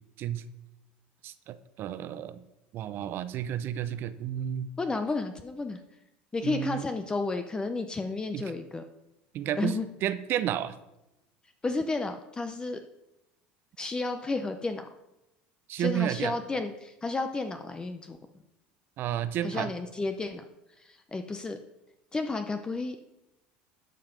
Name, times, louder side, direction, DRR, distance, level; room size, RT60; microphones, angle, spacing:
voice 1, 1.2-2.4 2.7-4.7 6.4-6.8 8.3-8.4 9.3-10.8 15.7-16.3 19.0-19.7, right 11 dB, 55° right, 13 dB, 0.7 m, -31 dB
voice 2, 4.8-5.8 6.3-8.8 9.6-9.9 11.6-12.8 13.8-14.9 15.8-18.2 19.4-20.4 20.8-21.6 22.1-23.0, left 3 dB, 20° left, 7 dB, 0.8 m, -32 dB
11.5 x 5.7 x 5.3 m, 0.91 s
supercardioid pair, 100°, 4 cm